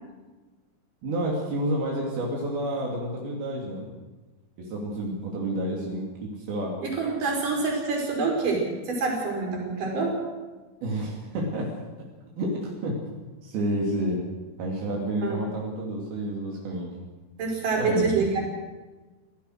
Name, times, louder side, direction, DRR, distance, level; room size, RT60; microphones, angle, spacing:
voice 1, 1.0-3.9 4.6-6.7 10.8-11.7 12.4-13.0 13.4-14.2 14.6-16.9 17.8-18.2, right 1 dB, 85° right, -3 dB, 4.8 m, -29 dB
voice 2, 6.8-10.2 15.2-15.4 17.4-18.4, right 4 dB, 60° right, 0 dB, 6.7 m, -26 dB
26.5 x 17.0 x 6.5 m, 1.3 s
omnidirectional pair, 4.2 m